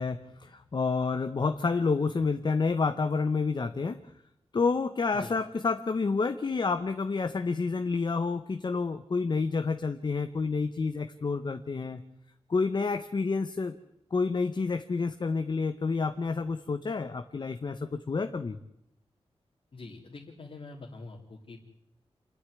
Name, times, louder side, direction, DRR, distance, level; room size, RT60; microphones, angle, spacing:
voice 1, 0.0-4.0 4.5-12.0 12.5-13.7 14.1-18.6, left 4 dB, 45° left, 9 dB, 0.9 m, -29 dB
voice 2, 19.7-21.6, left 3 dB, 60° left, -3 dB, 2.8 m, -45 dB
28.0 x 10.0 x 9.7 m, 0.84 s
wide cardioid pair, 125°, 11 cm